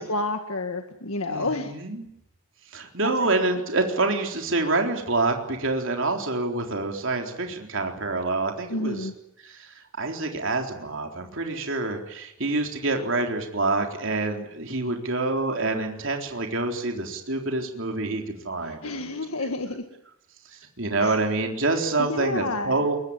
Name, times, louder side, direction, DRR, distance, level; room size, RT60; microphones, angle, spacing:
voice 1, 0.0-1.8 3.0-3.3 8.7-9.1 18.6-19.8 21.0-21.2 22.0-22.8, left 2 dB, 70° left, 5 dB, 1.9 m, -30 dB
voice 2, 1.3-2.1 2.7-9.1 9.4-19.5 20.8-23.0, right 2 dB, 60° right, 3 dB, 3.8 m, -27 dB
24.0 x 22.5 x 9.7 m, 0.81 s
head